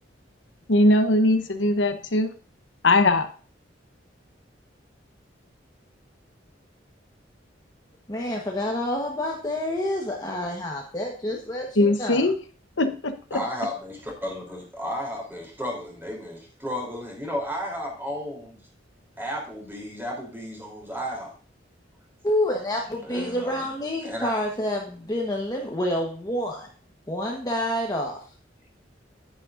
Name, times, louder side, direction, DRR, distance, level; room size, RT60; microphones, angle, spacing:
voice 1, 0.7-2.3 2.8-3.3 11.8-12.4 12.8-13.4, left 2 dB, 75° left, 7 dB, 1.0 m, -20 dB
voice 2, 8.1-12.3 22.2-26.7 27.1-28.2, left 1 dB, 20° left, 0 dB, 1.2 m, -28 dB
voice 3, 13.3-18.6 19.2-21.3 23.0-23.6 24.0-24.3, equal, 10° right, 0 dB, 3.3 m, -33 dB
9.8 x 9.7 x 2.6 m, 0.38 s
head